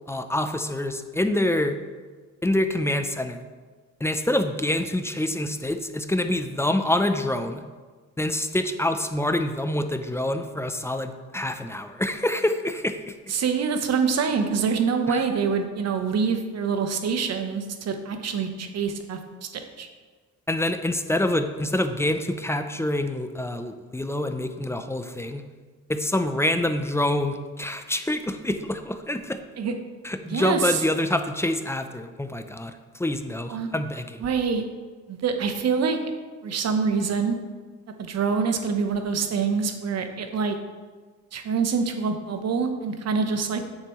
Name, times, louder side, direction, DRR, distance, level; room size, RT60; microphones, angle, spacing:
voice 1, 0.1-1.8 2.4-3.4 4.0-7.6 8.2-13.1 15.1-15.2 20.5-25.4 25.9-29.4 30.0-34.2, left 1 dB, 10° left, 8 dB, 0.5 m, -26 dB
voice 2, 13.3-19.9 29.6-29.7 30.3-30.8 33.5-33.7 34.2-34.6 35.1-36.0 36.4-37.4 38.0-40.6 41.3-43.7, right 5 dB, 55° right, 6 dB, 1.0 m, -25 dB
9.1 x 6.7 x 3.1 m, 1.4 s
cardioid pair, 90°, 30 cm